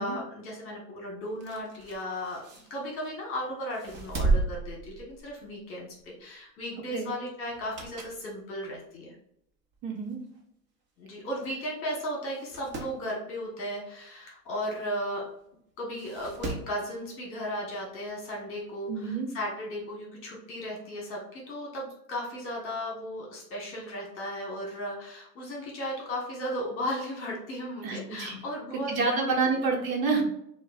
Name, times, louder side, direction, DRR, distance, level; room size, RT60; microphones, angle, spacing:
voice 1, 0.0-9.2 11.0-15.2 15.8-29.4, equal, 25° left, -1 dB, 1.3 m, -35 dB
sound 1, 1.3-3.2 3.7-5.6 6.0-6.2 7.5-8.3 8.7-8.8 9.7-9.8 10.1-10.2 10.3-10.4 11.3-11.5 11.8-11.9 12.3-13.0 14.8-14.9 15.9-16.8 18.1-18.2, right 3 dB, 25° right, 0.6 m, -33 dB
voice 2, 9.8-10.2 18.9-19.3 27.8-28.4 28.7-30.2, right 4 dB, 55° right, 0 dB, 1.3 m, -28 dB
6.4 x 2.5 x 2.4 m, 0.74 s
hypercardioid pair, 125°, 48 cm